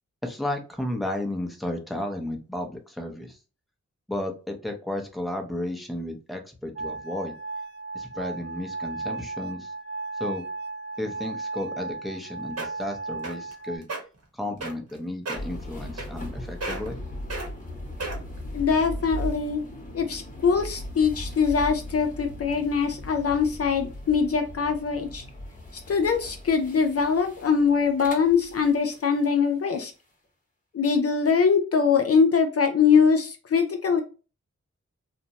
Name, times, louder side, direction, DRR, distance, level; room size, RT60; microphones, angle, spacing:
voice 1, 0.2-3.4 4.1-7.3 7.9-9.7 10.2-10.5 11.0-13.9 14.3-17.0, left 1 dB, ahead, 3 dB, 0.7 m, -33 dB
sound 1, 6.8-13.8, right 3 dB, 40° right, 0.4 m, -35 dB
sound 2, 12.1-12.2 12.6-12.9 13.2-13.5 13.8-14.0 14.6-15.0 15.3-15.5 16.0-16.3 16.6-17.0 17.3-17.5 18.0-18.4 19.0-19.1, right 2 dB, 60° right, 1.0 m, -33 dB
sound 3, 15.4-29.3, left 1 dB, 25° left, 1.0 m, -38 dB
voice 2, 18.5-19.6 19.9-25.2 25.9-29.9 30.7-34.0, left 6 dB, 55° left, 5 dB, 0.5 m, -22 dB
2.6 x 2.1 x 2.8 m, 0.33 s
cardioid pair, 55°, 29 cm